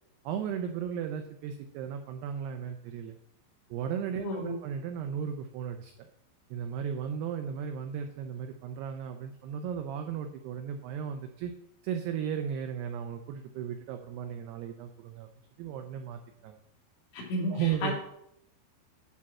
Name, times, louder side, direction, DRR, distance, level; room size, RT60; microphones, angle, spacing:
voice 1, 0.2-3.2 3.7-5.9 6.5-11.5 11.8-15.3 15.6-16.6 17.5-17.9, right 8 dB, 85° right, 5 dB, 2.3 m, -35 dB
voice 2, 4.2-4.6 17.1-17.9, left 1 dB, 70° left, -2 dB, 4.3 m, -33 dB
9.8 x 4.1 x 7.4 m, 0.77 s
omnidirectional pair, 5.5 m